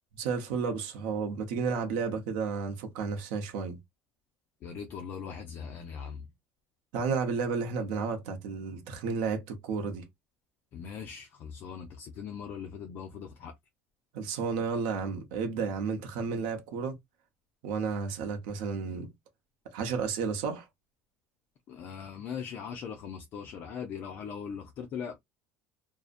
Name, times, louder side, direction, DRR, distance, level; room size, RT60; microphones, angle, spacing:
voice 1, 0.1-3.8 6.9-10.0 14.1-17.0 17.6-19.1 19.7-20.6, right 5 dB, 80° right, 0.7 m, -32 dB
voice 2, 4.6-6.3 10.7-13.5 21.7-25.2, left 7 dB, 40° left, 0.4 m, -40 dB
2.6 x 2.0 x 2.4 m
cardioid pair, 170°, 5 cm